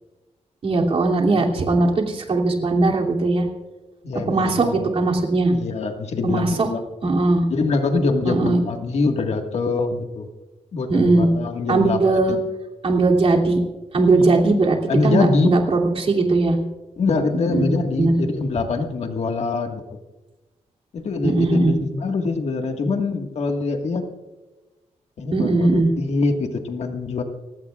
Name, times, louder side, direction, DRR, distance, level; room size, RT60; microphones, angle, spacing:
voice 1, 0.6-3.5 4.3-5.5 6.2-6.7 7.0-7.5 8.2-8.6 10.9-11.3 11.7-12.4 12.8-13.6 13.9-14.8 15.0-16.6 17.5-17.6 18.0-18.1 21.2-21.8 25.3-25.9, right 3 dB, 50° right, 1 dB, 2.8 m, -19 dB
voice 2, 4.0-4.9 5.5-6.8 7.5-10.3 10.7-12.4 14.2-14.6 14.9-15.6 17.0-19.8 20.9-24.1 25.2-27.2, left 3 dB, 60° left, 4 dB, 1.7 m, -24 dB
30.0 x 16.0 x 2.4 m, 1.1 s
wide cardioid pair, 130°, 12 cm